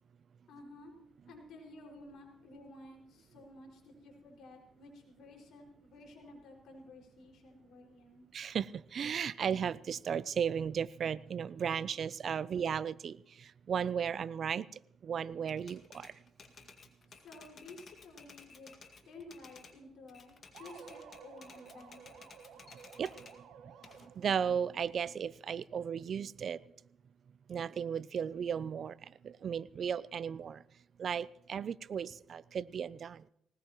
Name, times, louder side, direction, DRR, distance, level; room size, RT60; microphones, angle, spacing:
voice 1, 0.5-0.9 1.3-8.3 17.1-18.7 19.0-22.3, left 2 dB, 75° left, 0 dB, 5.5 m, -53 dB
voice 2, 8.3-14.7 15.0-16.2 23.0-23.1 23.6-23.7 24.2-26.6 27.5-30.6 31.0-33.3, right 7 dB, 55° right, 18 dB, 0.5 m, -35 dB
Typewriter, 15.5-19.8 20.1-23.4 23.8-25.5, left 5 dB, 50° left, 2.0 m, -56 dB
sound 1, 20.5-24.4, right 7 dB, 85° right, 1.4 m, -54 dB
19.5 x 19.5 x 3.1 m, 0.74 s
cardioid pair, 90°, 0 cm